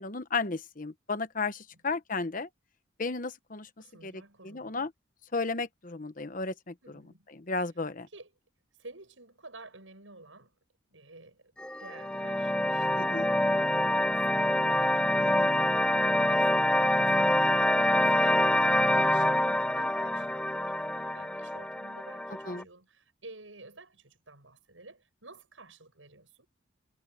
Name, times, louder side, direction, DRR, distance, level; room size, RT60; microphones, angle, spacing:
voice 1, 0.0-2.5 3.0-3.7 4.0-4.9 5.3-7.0 7.3-8.1 13.0-13.3 15.2-15.5 22.4-22.7, left 3 dB, 45° left, 1.1 m, -34 dB
voice 2, 3.8-4.8 6.8-7.3 8.0-8.3 8.8-10.5 10.9-26.5, right 2 dB, 80° right, 7.7 m, -52 dB
sound 1, 11.6-22.6, left 1 dB, 5° left, 0.4 m, -26 dB
head